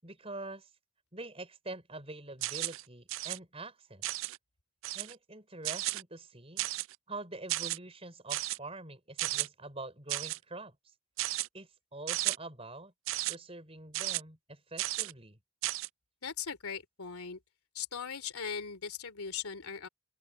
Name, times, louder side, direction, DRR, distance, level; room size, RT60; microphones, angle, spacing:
voice 1, 0.0-0.7 1.1-4.0 4.9-6.7 7.1-10.8 11.5-12.9 13.3-15.4, right 2 dB, 25° right, 6.0 m, -45 dB
sound 1, 2.4-2.8 3.1-3.4 4.0-4.4 4.8-5.1 5.6-6.0 6.6-6.9 7.5-7.8 8.3-8.6 9.2-9.5 10.1-10.4 11.2-11.5 12.1-12.4 13.1-13.3 13.9-14.2 14.8-15.1 15.6-15.9, right 18 dB, 65° right, 0.3 m, -33 dB
voice 2, 16.2-17.4 17.7-19.9, left 7 dB, 90° left, 3.3 m, -39 dB
open air
head